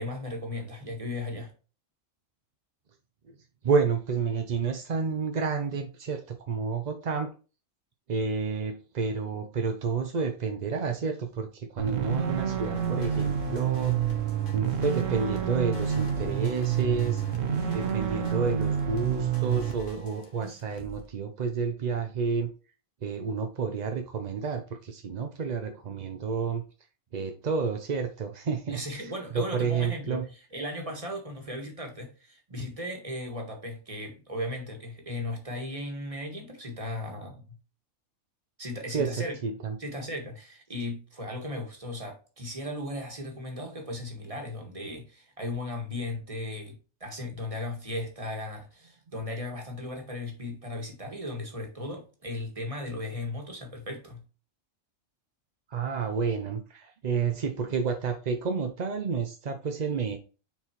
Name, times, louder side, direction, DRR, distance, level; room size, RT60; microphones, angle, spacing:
voice 1, 0.0-1.5 28.7-37.6 38.6-39.4 39.8-46.7 47.0-54.2, left 1 dB, 25° right, 1.6 m, -36 dB
voice 2, 3.6-7.3 8.1-14.0 14.5-17.2 17.7-22.5 23.0-26.6 27.1-30.3 38.9-39.1 39.4-39.8 55.7-60.2, right 5 dB, 50° right, 0.5 m, -30 dB
sound 1, 11.8-19.7, right 8 dB, 70° right, 1.2 m, -28 dB
sound 2, 12.7-21.1, right 1 dB, 40° left, 1.3 m, -47 dB
7.1 x 4.6 x 3.0 m
omnidirectional pair, 1.4 m